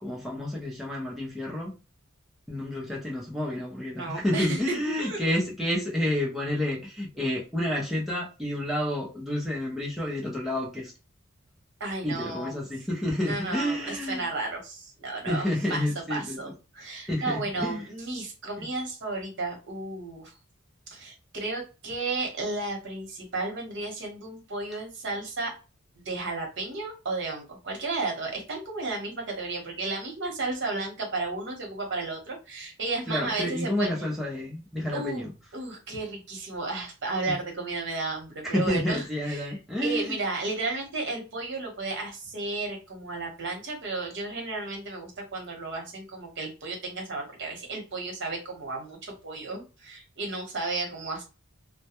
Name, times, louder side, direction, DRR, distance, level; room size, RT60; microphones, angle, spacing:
voice 1, 0.0-1.8 2.5-10.9 12.0-14.3 15.3-16.4 17.0-17.9 18.6-18.7 33.1-35.3 38.4-40.2, left 1 dB, ahead, 0.6 m, -30 dB
voice 2, 3.9-5.3 11.8-12.6 13.2-15.8 16.1-20.3 20.9-25.5 26.0-33.9 34.9-51.2, right 3 dB, 60° right, 0.9 m, -33 dB
2.2 x 2.1 x 2.9 m
head